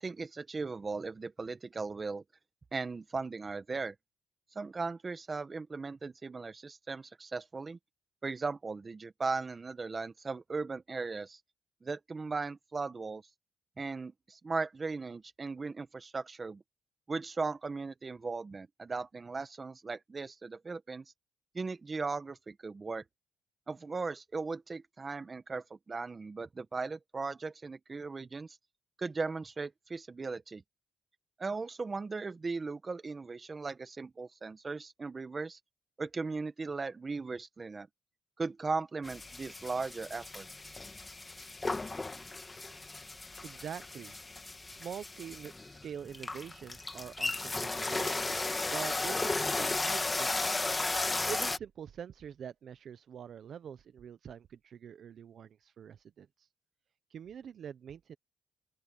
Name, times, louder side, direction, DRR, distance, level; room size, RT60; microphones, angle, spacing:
voice 1, 0.0-2.2 2.7-3.9 4.5-7.8 8.2-11.4 11.8-13.2 13.8-16.6 17.1-21.0 21.5-23.0 23.7-28.6 29.0-30.6 31.4-35.6 36.0-37.9 38.4-40.5, right 4 dB, 30° right, 1.7 m, -37 dB
sound 1, 39.0-51.6, left 3 dB, 20° left, 1.6 m, -35 dB
voice 2, 43.4-44.2 44.7-48.1 48.7-50.8 51.3-56.5 57.1-58.2, right 8 dB, 60° right, 0.9 m, -45 dB
open air
cardioid pair, 90°, 0 cm